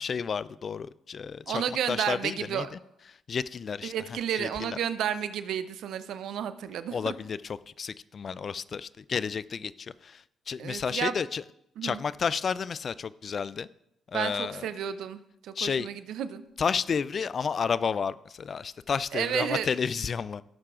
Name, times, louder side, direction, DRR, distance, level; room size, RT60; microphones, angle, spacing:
voice 1, 0.0-2.8 3.1-4.8 6.9-11.4 11.8-13.7 14.1-14.7 15.5-15.9 16.6-20.4, left 6 dB, 50° left, 0.3 m, -31 dB
voice 2, 1.5-2.7 3.8-7.1 10.6-11.1 11.8-12.0 14.1-16.4 19.1-19.7, right 9 dB, 70° right, 0.6 m, -32 dB
17.0 x 6.6 x 2.5 m
hypercardioid pair, 50°, 0 cm